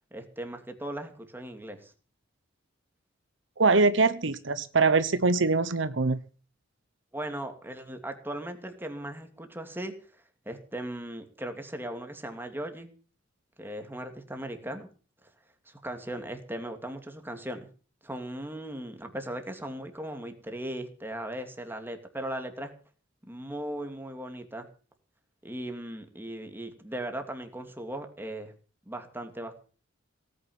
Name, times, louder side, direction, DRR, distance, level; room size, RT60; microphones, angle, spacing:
voice 1, 0.1-1.9 7.1-12.9 13.6-14.9 15.7-17.7 18.0-22.7 23.2-24.7 25.4-28.5 28.9-29.6, right 1 dB, 10° right, 6 dB, 2.7 m, -38 dB
voice 2, 3.6-6.2, right 3 dB, 70° right, 13 dB, 1.0 m, -23 dB
18.0 x 9.6 x 7.2 m, 0.40 s
head